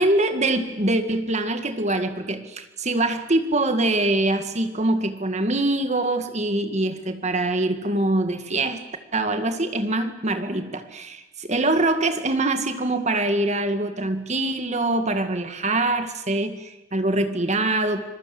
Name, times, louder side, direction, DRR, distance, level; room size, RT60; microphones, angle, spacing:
voice 1, 0.0-8.8 9.1-18.0, right 2 dB, 35° right, 8 dB, 1.9 m, -24 dB
26.5 x 21.5 x 7.7 m, 1.0 s
head